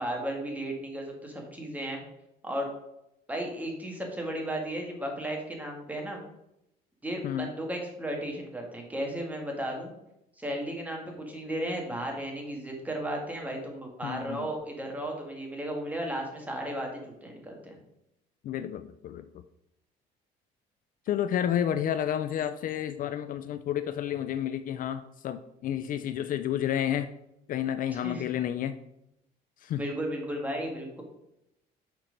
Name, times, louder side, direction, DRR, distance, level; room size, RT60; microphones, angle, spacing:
voice 1, 0.0-2.0 2.4-2.7 3.3-6.2 7.0-9.9 10.4-17.8 28.0-28.2 29.8-31.0, right 1 dB, 10° right, 1 dB, 1.8 m, -34 dB
voice 2, 14.0-14.5 18.4-19.3 21.1-27.1 27.5-28.8 29.6-29.8, left 10 dB, 55° left, 11 dB, 0.4 m, -30 dB
5.9 x 4.4 x 5.1 m, 0.82 s
cardioid pair, 110°, 17 cm